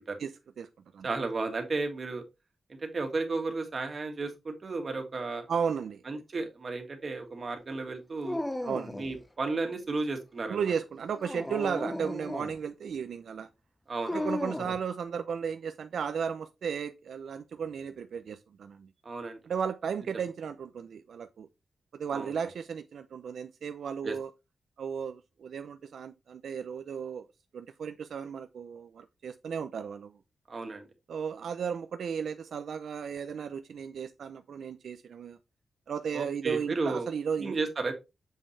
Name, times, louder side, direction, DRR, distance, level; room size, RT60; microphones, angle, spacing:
voice 1, 0.2-0.7 0.9-1.1 5.5-6.2 8.6-9.0 10.5-13.5 14.1-18.9 19.5-21.5 21.9-24.3 24.8-27.3 27.5-30.2 31.1-35.4 35.9-37.6, right 7 dB, 85° right, 0.5 m, -35 dB
voice 2, 1.0-2.2 2.7-5.5 6.1-8.4 9.0-10.6 13.9-14.3 19.1-19.4 22.1-22.3 24.0-24.1 30.5-30.8 36.1-37.1 37.4-37.9, right 3 dB, 40° right, 1.9 m, -33 dB
Dog, 8.2-9.2 11.1-12.6 14.1-14.8, left 1 dB, 10° left, 0.4 m, -35 dB
7.4 x 5.4 x 3.2 m
wide cardioid pair, 130°, 0 cm